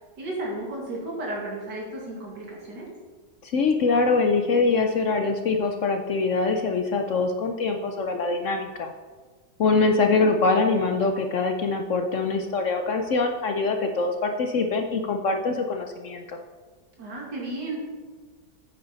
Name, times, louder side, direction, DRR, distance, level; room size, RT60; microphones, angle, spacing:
voice 1, 0.2-2.9 9.9-10.4 17.0-17.8, right 1 dB, 70° right, -3 dB, 2.6 m, -34 dB
voice 2, 3.4-8.9 9.6-16.4, left 3 dB, 60° left, 5 dB, 0.8 m, -24 dB
9.1 x 8.8 x 4.0 m, 1.4 s
omnidirectional pair, 1.9 m